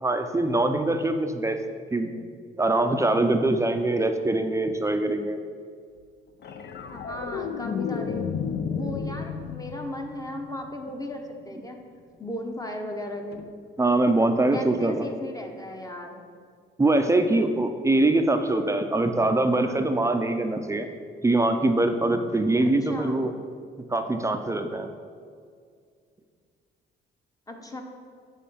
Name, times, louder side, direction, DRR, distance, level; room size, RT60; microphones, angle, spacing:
voice 1, 0.0-1.6 1.9-2.1 2.6-5.4 13.8-15.1 16.8-20.9 21.2-23.3 23.9-24.9, right 2 dB, 15° right, 6 dB, 0.5 m, -23 dB
sound 1, 6.4-10.9 13.3-13.5, left 6 dB, 55° left, 0.6 m, -32 dB
voice 2, 6.9-8.3 8.6-11.8 12.2-13.5 14.5-16.2 22.6-23.2 27.5-27.8, left 1 dB, 15° left, 3 dB, 0.9 m, -36 dB
7.4 x 3.7 x 5.6 m, 2.1 s
cardioid pair, 90°, 20 cm